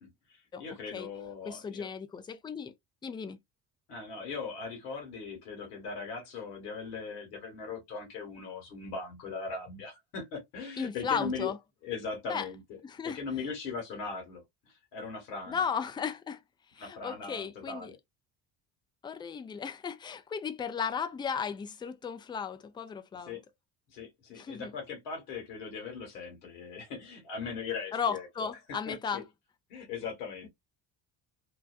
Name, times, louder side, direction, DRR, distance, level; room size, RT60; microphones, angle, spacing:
voice 1, 0.0-1.9 3.9-11.5 11.8-12.8 13.0-15.6 16.8-18.0 23.2-23.4 23.9-28.5 28.9-29.2 29.7-30.5, left 5 dB, 75° left, 1.3 m, -39 dB
voice 2, 1.5-2.7 3.0-3.4 10.8-11.6 12.3-12.5 12.8-13.2 15.5-16.4 16.7-17.9 19.0-23.4 24.3-24.7 27.9-29.2, left 6 dB, 10° left, 0.3 m, -35 dB
2.6 x 2.2 x 2.3 m
hypercardioid pair, 55°, 47 cm